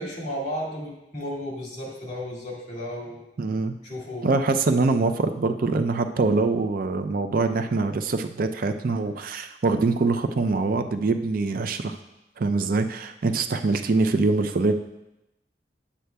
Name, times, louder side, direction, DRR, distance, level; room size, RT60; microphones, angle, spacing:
voice 1, 0.0-3.2 3.8-4.4, equal, 40° left, -3 dB, 2.2 m, -33 dB
voice 2, 3.4-3.7 4.2-12.0 12.4-14.7, right 3 dB, 55° right, 8 dB, 0.4 m, -24 dB
9.9 x 7.9 x 2.3 m, 0.90 s
head